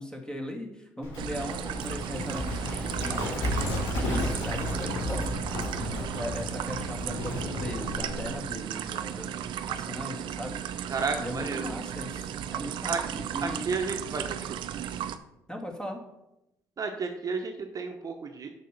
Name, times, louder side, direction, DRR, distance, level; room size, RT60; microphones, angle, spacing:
voice 1, 0.0-3.3 4.0-5.6 6.1-9.3 9.6-10.9 11.2-13.6 15.5-16.0, equal, 10° left, 2 dB, 2.0 m, -38 dB
Livestock farm animals working animals, 1.0-8.4, left 1 dB, 75° left, 3.3 m, -33 dB
sound 1, 1.2-15.2, right 9 dB, 65° right, 0.5 m, -35 dB
voice 2, 10.9-11.6 12.9-13.0 13.4-14.5 16.8-18.5, right 4 dB, 40° right, 4 dB, 1.0 m, -32 dB
6.6 x 5.0 x 6.6 m, 0.87 s
hypercardioid pair, 50°, 9 cm